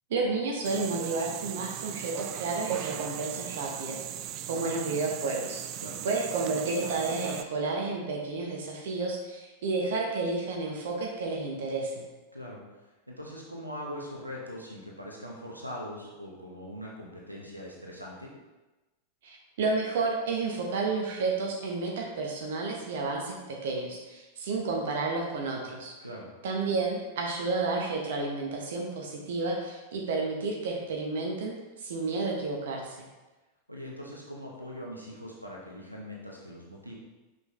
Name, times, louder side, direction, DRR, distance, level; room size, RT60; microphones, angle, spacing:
voice 1, 0.1-4.0 4.5-5.7 6.0-12.1 19.2-25.9 26.4-33.1, right 3 dB, 55° right, 0 dB, 1.0 m, -31 dB
sound 1, 0.6-7.4, right 11 dB, 40° right, 0.4 m, -37 dB
voice 2, 13.1-18.3 26.0-26.3 33.7-36.9, equal, 90° right, -2 dB, 1.0 m, -41 dB
6.3 x 5.4 x 3.2 m, 1.1 s
figure-of-eight pair, 90°, 0 cm